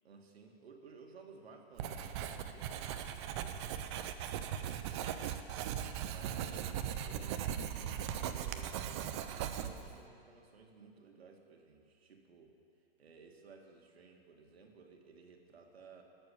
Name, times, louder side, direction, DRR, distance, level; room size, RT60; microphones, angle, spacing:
voice 1, 0.0-5.7 6.0-12.6 13.0-16.0, right 4 dB, 80° right, 2 dB, 2.1 m, -57 dB
Writing, 1.8-10.0, right 9 dB, 30° right, 0.5 m, -39 dB
14.5 x 7.1 x 8.5 m, 2.5 s
hypercardioid pair, 145°, 31 cm